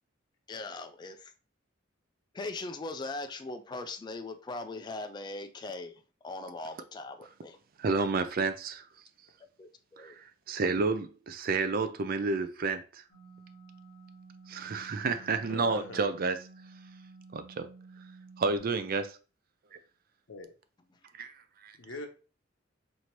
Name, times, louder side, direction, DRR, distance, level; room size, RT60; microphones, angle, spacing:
voice 1, 0.5-1.3 2.3-7.6 9.6-10.2 20.9-21.0, left 2 dB, 20° left, 0.3 m, -40 dB
voice 2, 7.8-8.8 10.0-13.0 14.5-16.4 17.3-17.7 18.4-19.2 19.7-19.8 21.2-21.3 21.6-21.7, right 4 dB, 50° right, 0.4 m, -30 dB
sound 1, 13.1-18.6, right 3 dB, 55° left, 1.1 m, -53 dB
voice 3, 15.5-16.0 20.3-20.5 21.8-22.1, left 2 dB, 75° left, 0.8 m, -42 dB
4.4 x 2.7 x 2.9 m
head